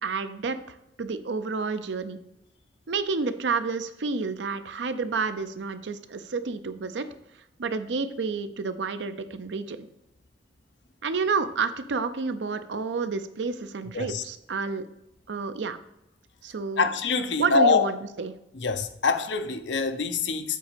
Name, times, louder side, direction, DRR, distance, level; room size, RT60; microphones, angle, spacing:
voice 1, 0.0-2.2 2.9-7.1 7.6-9.9 11.0-14.9 15.3-15.8 16.4-16.9 17.4-18.3, right 4 dB, 85° right, 0.6 m, -30 dB
voice 2, 16.8-17.9 18.6-20.6, left 4 dB, 90° left, 0.7 m, -24 dB
7.7 x 4.0 x 5.1 m
head